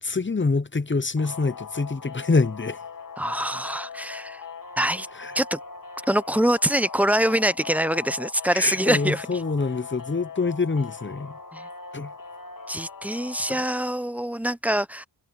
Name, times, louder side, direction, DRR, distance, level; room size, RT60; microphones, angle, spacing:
voice 1, 0.0-2.8 5.1-5.3 8.5-11.4 11.9-12.1, left 4 dB, 30° left, 0.9 m, -25 dB
sound 1, 1.2-13.9, left 5 dB, 50° left, 1.7 m, -40 dB
voice 2, 3.2-4.4 4.8-5.1 5.3-5.6 6.1-9.3 11.5-11.7 12.7-15.0, right 1 dB, 5° right, 0.7 m, -24 dB
cardioid pair, 50°, 41 cm